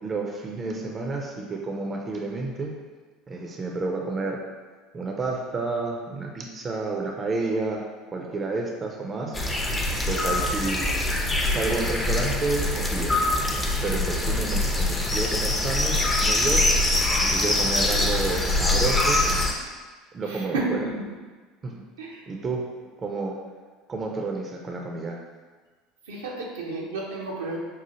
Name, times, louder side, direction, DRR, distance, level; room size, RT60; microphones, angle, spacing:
voice 1, 0.0-2.8 3.3-4.4 4.9-7.8 8.1-9.4 10.1-10.8 11.4-13.2 13.8-16.6 17.2-19.2 20.1-20.8 21.6-21.7 22.3-22.6 23.0-23.4 23.9-25.2, right 3 dB, 30° right, 0 dB, 0.5 m, -30 dB
sound 1, 9.3-19.5, left 2 dB, 15° left, 0.6 m, -24 dB
voice 2, 20.3-21.1 22.0-22.2 26.1-27.6, right 2 dB, 75° right, -2 dB, 0.7 m, -31 dB
5.4 x 2.4 x 2.8 m, 1.4 s
figure-of-eight pair, 70°, 0 cm